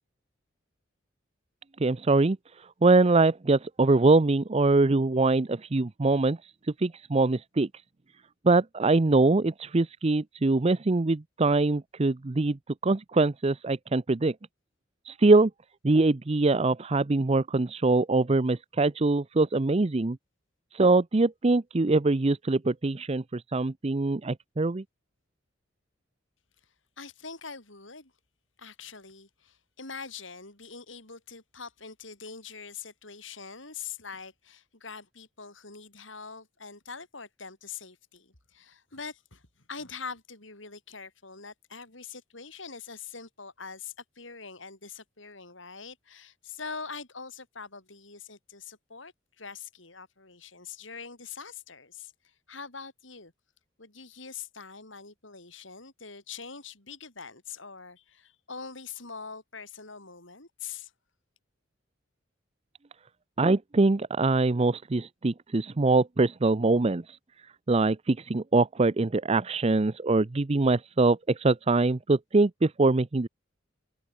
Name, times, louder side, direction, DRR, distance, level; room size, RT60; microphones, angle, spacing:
voice 1, 1.8-6.4 6.8-7.7 8.4-12.6 12.8-14.3 15.1-15.5 15.8-20.2 20.7-24.8 63.4-67.2 67.7-73.3, right 3 dB, 30° right, 0.6 m, -23 dB
voice 2, 27.0-28.1 28.6-39.4 39.7-53.3 53.8-60.9, left 5 dB, 75° left, 6.6 m, -43 dB
head